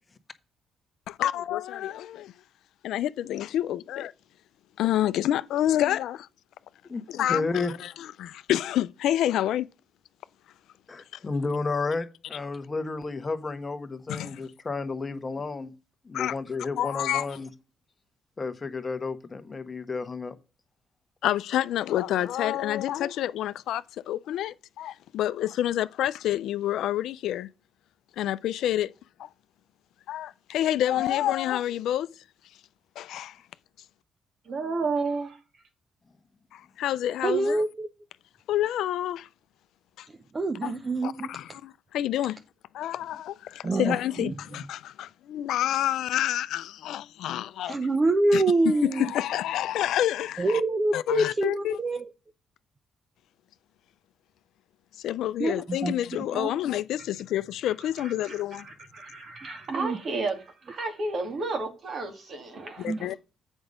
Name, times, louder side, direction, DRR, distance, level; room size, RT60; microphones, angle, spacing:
voice 1, 1.1-2.3 2.8-4.1 4.8-6.3 7.1-9.7 14.1-14.4 16.1-16.3 16.8-17.3 21.2-27.5 28.2-28.9 29.2-29.3 30.1-32.1 33.0-33.4 36.5-37.6 38.5-39.3 40.0-40.1 40.6-40.8 41.0-42.4 42.7-47.8 48.3-50.6 50.9-51.8 55.0-58.7 62.8-63.1, left 12 dB, 80° left, 0.5 m, -28 dB
voice 2, 7.3-7.7 10.9-15.7 16.0-17.5 18.4-20.4, left 3 dB, 30° left, 1.2 m, -32 dB
voice 3, 34.4-35.4 56.3-56.5 57.8-63.2, right 3 dB, 55° right, 2.7 m, -32 dB
voice 4, 37.2-37.9 40.1-41.3 43.6-44.3 47.6-49.1 50.4-52.1 55.4-56.3 59.7-60.0 62.8-63.1, right 2 dB, 30° right, 0.8 m, -26 dB
8.0 x 5.3 x 5.0 m
cardioid pair, 90°, 0 cm